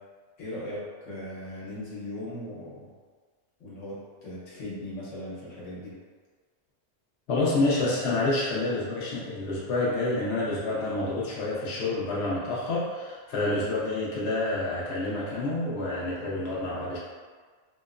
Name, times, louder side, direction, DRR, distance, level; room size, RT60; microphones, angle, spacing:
voice 1, 0.4-2.9 3.6-5.9, left 1 dB, 80° left, -8 dB, 1.2 m, -38 dB
voice 2, 7.3-17.0, left 2 dB, 65° left, -6 dB, 0.8 m, -28 dB
2.9 x 2.0 x 2.3 m, 1.5 s
omnidirectional pair, 1.3 m